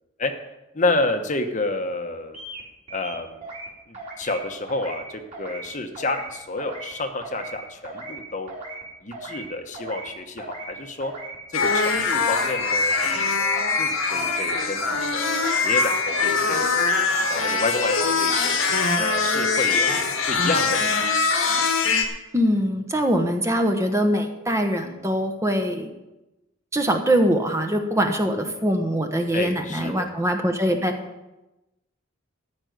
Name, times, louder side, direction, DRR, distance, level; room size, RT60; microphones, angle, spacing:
voice 1, 0.7-2.4 2.9-3.4 3.9-8.5 9.0-11.1 11.5-16.6 17.3-18.6 19.0-20.9 29.3-30.1, left 2 dB, 35° left, 6 dB, 1.1 m, -29 dB
sound 1, 2.3-2.6 2.9-3.7 3.9-4.4 4.7-5.0 5.3-5.7 5.9-6.3 6.6-6.9 7.2-7.6 7.8-8.2 8.5-8.8 9.1-9.5 9.7-10.1 10.4-10.7 11.0-11.4 11.6-12.0 12.3-12.6 12.9-13.3 13.5-13.9 14.2-14.5 14.8-15.2 15.4-15.8 16.1-16.4, right 2 dB, 35° right, 3.5 m, -37 dB
sound 2, 11.5-22.0, left 4 dB, 85° left, 1.7 m, -22 dB
voice 2, 22.3-25.9 26.7-31.0, equal, 15° right, 5 dB, 1.1 m, -23 dB
14.0 x 5.3 x 9.3 m, 0.99 s
head